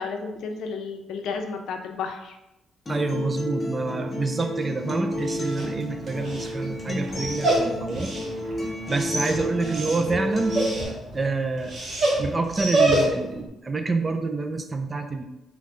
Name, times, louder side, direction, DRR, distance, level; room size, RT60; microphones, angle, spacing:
voice 1, 0.0-2.4, left 5 dB, 80° left, 5 dB, 0.5 m, -32 dB
Acoustic guitar, 2.9-10.8, left 1 dB, 25° left, 1.2 m, -31 dB
voice 2, 2.9-8.2 8.9-10.6 11.1-11.8 12.2-15.2, right 3 dB, 30° right, 6 dB, 0.5 m, -27 dB
Dog, 5.1-13.4, right 2 dB, 55° right, 1.5 m, -27 dB
3.5 x 3.2 x 3.7 m, 0.90 s
cardioid pair, 90°, 0 cm